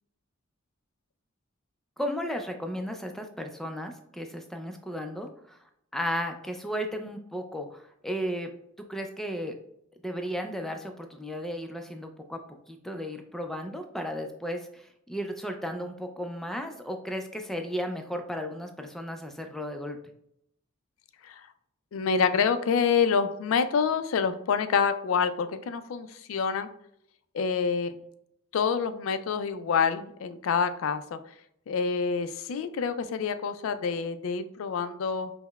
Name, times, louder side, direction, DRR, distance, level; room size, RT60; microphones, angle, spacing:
voice 1, 2.0-8.5 8.9-9.6 10.0-20.0, equal, ahead, 4 dB, 0.3 m, -34 dB
voice 2, 21.9-26.7 27.3-28.0 28.5-31.2 31.7-35.3, left 6 dB, 75° left, 11 dB, 0.3 m, -27 dB
5.5 x 2.0 x 2.3 m, 0.74 s
head